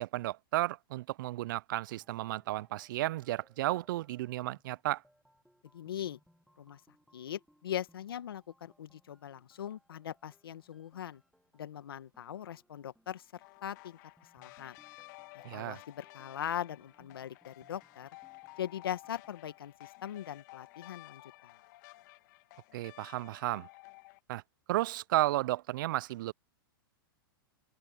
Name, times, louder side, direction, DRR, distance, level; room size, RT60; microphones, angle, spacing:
voice 1, 0.0-5.0 15.4-15.8 22.7-23.7 24.3-24.4 24.7-26.3, right 16 dB, 60° right, 0.4 m, -33 dB
sound 1, 2.0-19.6, equal, ahead, 7.6 m, -68 dB
voice 2, 5.7-6.2 6.6-6.8 7.1-11.2 11.5-14.0 14.3-14.8 15.5-18.1 18.6-21.5, left 10 dB, 80° left, 1.7 m, -40 dB
sound 2, 13.4-24.2, left 22 dB, 55° left, 2.1 m, -54 dB
open air
hypercardioid pair, 125°, 12 cm